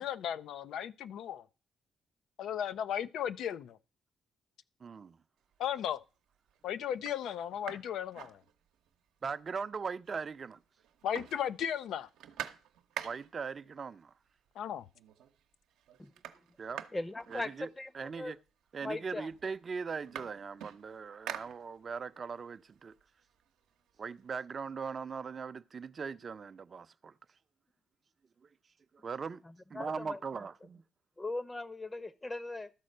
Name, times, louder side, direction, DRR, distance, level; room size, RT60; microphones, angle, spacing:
voice 1, 0.0-1.4 2.4-3.8 5.6-6.0 6.6-8.4 11.0-12.1 14.6-14.9, left 9 dB, 75° left, 0.4 m, -35 dB
voice 2, 4.8-5.2 9.2-10.6 13.0-14.1 16.6-16.8 17.3-17.7 17.9-18.4 18.7-22.9 24.0-27.1 29.0-29.4 29.7-30.8, right 5 dB, 45° right, 0.6 m, -40 dB
sound 1, 5.5-6.0 6.5-6.6 6.9-9.0 9.3-9.4 9.7-10.5 10.8-13.5 14.5-14.6 14.9-15.4 15.7-18.1 18.9-19.0 19.3-22.1 22.5-24.3, right 10 dB, 85° right, 0.8 m, -47 dB
voice 3, 16.9-18.3 18.8-19.3 29.0-29.1 29.4-30.5 31.2-32.7, left 2 dB, 20° left, 0.8 m, -40 dB
12.5 x 4.2 x 6.5 m
supercardioid pair, 65°, 0 cm